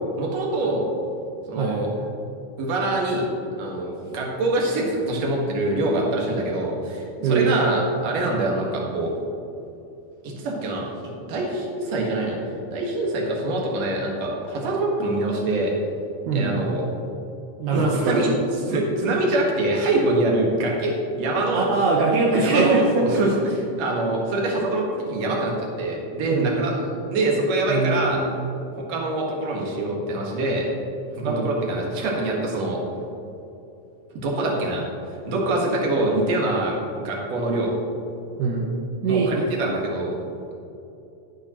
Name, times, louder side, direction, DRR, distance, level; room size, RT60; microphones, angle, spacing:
voice 1, 0.2-0.8 1.5-1.9 2.6-3.3 3.6-9.2 10.2-12.4 12.7-15.7 16.3-16.8 17.7-18.3 18.7-21.7 22.3-26.7 27.1-28.2 28.9-30.7 31.2-32.8 34.2-34.8 35.3-37.7 39.1-40.1, right 2 dB, 60° right, -2 dB, 2.6 m, -24 dB
voice 2, 1.6-1.9 7.2-7.5 16.3-16.7 17.6-18.3 21.5-23.1 26.3-26.5 27.7-28.2 31.2-31.5 38.4-38.6 39.0-39.3, right 4 dB, 75° right, -4 dB, 2.3 m, -22 dB
11.5 x 8.6 x 3.0 m, 2.8 s
omnidirectional pair, 3.7 m